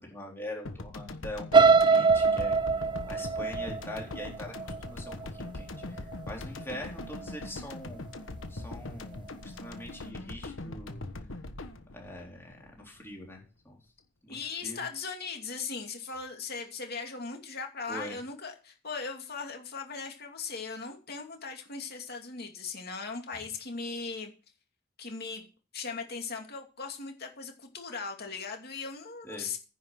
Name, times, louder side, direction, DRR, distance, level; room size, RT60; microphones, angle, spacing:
voice 1, 0.0-2.6 3.1-8.0 8.5-11.0 11.9-13.8 14.2-14.8 17.9-18.2 29.2-29.5, left 1 dB, 10° left, -1 dB, 3.8 m, -43 dB
sound 1, 0.7-13.1, left 2 dB, 75° left, 1.3 m, -41 dB
sound 2, 1.5-5.5 6.0-6.3 6.6-6.7, right 4 dB, 25° right, 0.5 m, -23 dB
voice 2, 14.3-24.3 25.0-25.5 25.7-29.6, left 4 dB, 55° left, 4 dB, 2.5 m, -38 dB
10.0 x 5.9 x 7.5 m, 0.35 s
head